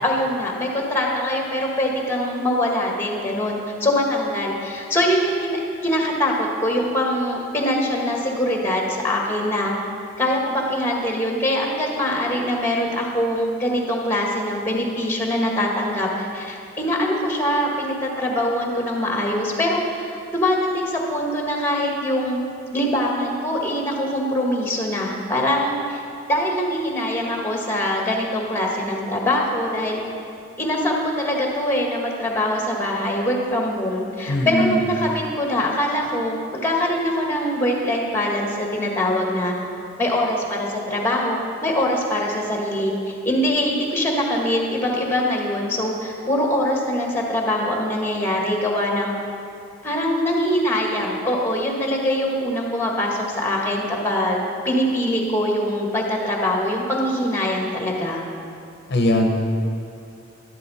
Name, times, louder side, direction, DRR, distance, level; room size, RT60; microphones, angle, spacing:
voice 1, 0.0-9.7 10.2-22.4 22.7-26.0 26.3-30.0 30.6-39.5 40.0-49.1 49.8-58.2, left 1 dB, 10° left, 0 dB, 1.6 m, -23 dB
voice 2, 34.3-34.7 58.9-59.3, left 1 dB, 60° left, 2 dB, 0.9 m, -19 dB
12.0 x 11.5 x 4.2 m, 2.5 s
head